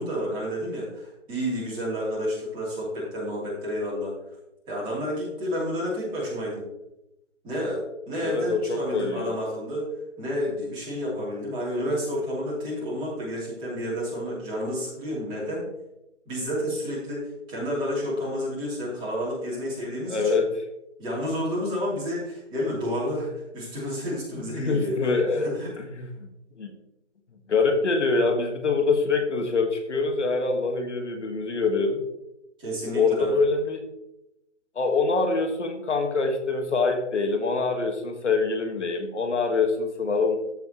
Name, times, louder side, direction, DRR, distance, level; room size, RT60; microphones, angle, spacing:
voice 1, 0.0-4.1 4.7-6.7 7.4-9.9 10.2-15.7 16.2-20.4 21.0-25.7 32.6-33.3, equal, 15° right, -7 dB, 3.1 m, -30 dB
voice 2, 8.2-9.3 20.1-20.6 24.6-25.5 25.8-26.3 26.5-26.7 27.5-32.0 32.9-33.8 34.7-40.4, left 4 dB, 70° left, 5 dB, 1.7 m, -24 dB
14.5 x 5.8 x 3.0 m, 0.88 s
figure-of-eight pair, 155°, 37 cm